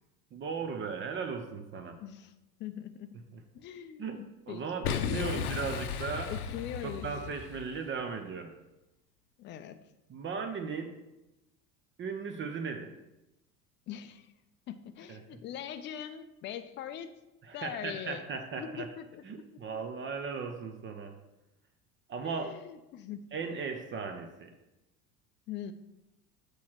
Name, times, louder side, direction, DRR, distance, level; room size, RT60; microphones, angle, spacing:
voice 1, 0.3-2.0 4.0-4.2 4.5-6.3 6.8-8.5 10.1-11.0 12.0-12.9 15.1-15.2 17.5-18.9 19.2-21.1 22.1-22.5 23.3-24.5, right 5 dB, 25° right, 6 dB, 0.7 m, -37 dB
voice 2, 2.0-3.2 3.5-5.4 6.3-7.1 9.4-9.8 13.9-14.4 14.7-17.1 17.5-18.2 18.6-19.5 22.2-23.4 25.5-25.7, left 10 dB, 25° left, 10 dB, 0.4 m, -42 dB
Boom, 4.8-7.8, left 8 dB, 75° left, 0.7 m, -35 dB
7.0 x 3.2 x 6.1 m, 0.96 s
figure-of-eight pair, 70°, 46 cm